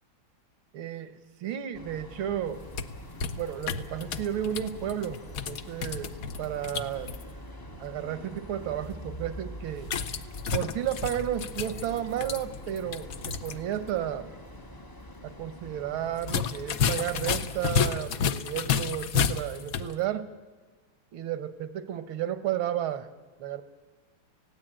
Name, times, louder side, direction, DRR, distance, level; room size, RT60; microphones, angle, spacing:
voice 1, 0.7-2.6 3.4-5.2 5.5-7.1 7.8-9.9 10.5-14.3 15.2-20.3 21.1-23.1 23.4-23.6, right 11 dB, 80° right, 12 dB, 1.9 m, -33 dB
sound 1, 1.7-17.9, equal, 20° left, 0.6 m, -45 dB
sound 2, 2.5-7.2 9.8-13.6 13.9-14.0 16.2-19.9, left 7 dB, 60° left, 1.0 m, -31 dB
19.5 x 16.0 x 8.8 m, 1.4 s
omnidirectional pair, 2.2 m